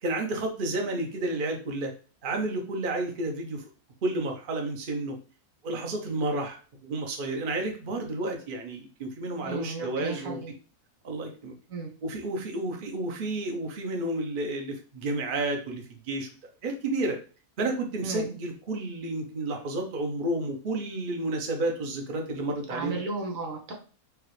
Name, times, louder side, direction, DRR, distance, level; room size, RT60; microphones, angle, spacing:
voice 1, 0.0-1.9 2.2-3.6 4.0-5.2 5.6-10.4 11.0-11.5 12.0-16.3 16.6-17.2 17.6-23.0, right 2 dB, 45° right, 2 dB, 0.7 m, -31 dB
voice 2, 9.4-10.5 11.7-11.9 18.0-18.3 22.7-23.7, right 3 dB, 70° right, 1 dB, 1.4 m, -34 dB
4.8 x 2.4 x 3.1 m, 0.37 s
omnidirectional pair, 1.6 m